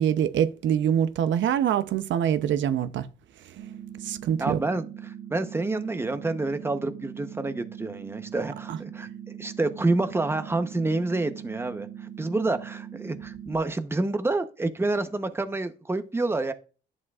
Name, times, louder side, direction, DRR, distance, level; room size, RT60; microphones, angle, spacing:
voice 1, 0.0-3.1 4.0-4.6 8.7-8.8, right 9 dB, 70° right, 0.6 m, -24 dB
sound 1, 3.6-13.6, right 9 dB, 90° right, 1.3 m, -41 dB
voice 2, 4.4-16.5, right 2 dB, 10° right, 0.8 m, -28 dB
11.0 x 7.3 x 2.4 m
cardioid pair, 90°, 20 cm